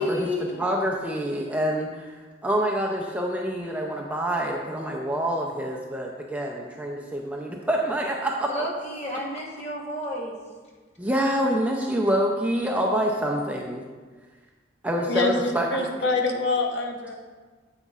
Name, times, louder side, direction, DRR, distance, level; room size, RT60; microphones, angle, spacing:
voice 1, 0.0-0.7 8.5-10.4, left 1 dB, 35° left, -2 dB, 1.2 m, -31 dB
voice 2, 0.6-2.1 2.4-8.7 11.0-13.8 14.8-15.8, equal, 5° right, -1 dB, 0.5 m, -26 dB
voice 3, 15.1-17.1, left 3 dB, 60° left, 3 dB, 0.9 m, -25 dB
9.4 x 8.0 x 2.4 m, 1.4 s
head